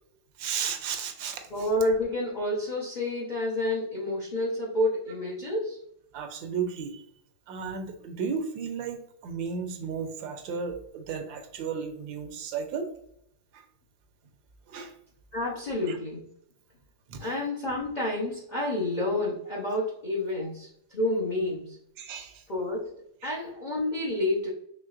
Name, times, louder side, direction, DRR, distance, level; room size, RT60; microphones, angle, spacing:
voice 1, 0.4-1.7 6.1-7.0 7.5-12.9 13.5-13.6 14.7-14.9 15.9-16.0 17.1-17.3 22.0-22.4 23.2-23.4, right 6 dB, 85° right, 6 dB, 1.3 m, -34 dB
voice 2, 1.5-5.8 15.3-16.3 17.2-21.8 22.5-24.5, left 1 dB, 65° left, -5 dB, 0.4 m, -29 dB
4.5 x 3.2 x 2.4 m, 0.73 s
omnidirectional pair, 2.0 m